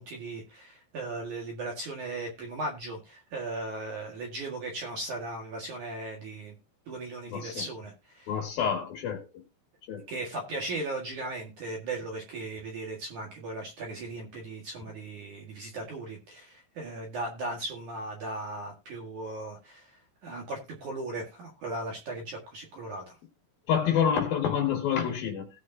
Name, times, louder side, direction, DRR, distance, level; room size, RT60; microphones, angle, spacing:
voice 1, 0.0-6.5 6.9-8.4 10.1-19.9 20.2-23.1, right 2 dB, 55° right, 2.5 m, -37 dB
voice 2, 7.3-7.6 8.3-9.2 9.9-10.0 23.7-25.5, left 8 dB, 60° left, 3.1 m, -27 dB
18.5 x 6.5 x 2.7 m
omnidirectional pair, 5.5 m